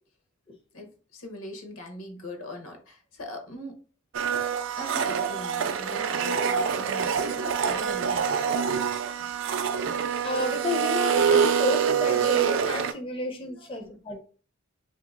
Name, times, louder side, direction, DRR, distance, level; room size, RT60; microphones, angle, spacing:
voice 1, 0.7-3.8 4.8-9.4 9.7-9.9 13.6-13.8, left 1 dB, 80° left, 1.0 m, -41 dB
Domestic sounds home sounds, 4.1-12.9, right 7 dB, 60° right, 0.3 m, -26 dB
voice 2, 10.2-14.2, left 2 dB, 25° left, 0.4 m, -31 dB
3.0 x 2.8 x 3.6 m
head